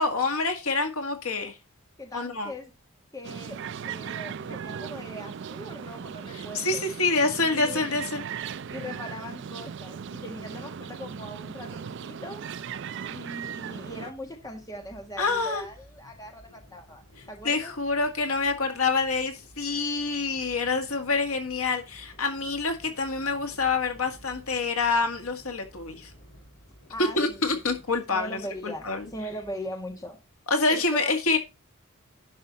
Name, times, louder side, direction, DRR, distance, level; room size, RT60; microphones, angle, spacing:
voice 1, 0.0-1.6 2.1-2.5 6.3-8.2 15.2-15.7 17.4-26.1 27.0-29.1 30.5-31.4, left 3 dB, 75° left, 1.9 m, -27 dB
voice 2, 2.0-2.7 3.1-3.6 3.9-6.8 7.5-8.0 8.7-12.4 13.1-17.7 26.9-27.8 28.1-30.2 30.7-31.1, left 1 dB, 15° left, 1.6 m, -40 dB
sound 1, 3.2-14.1, right 7 dB, 55° right, 0.4 m, -38 dB
sound 2, 13.9-30.1, equal, 60° left, 4.8 m, -54 dB
11.0 x 5.5 x 4.1 m
head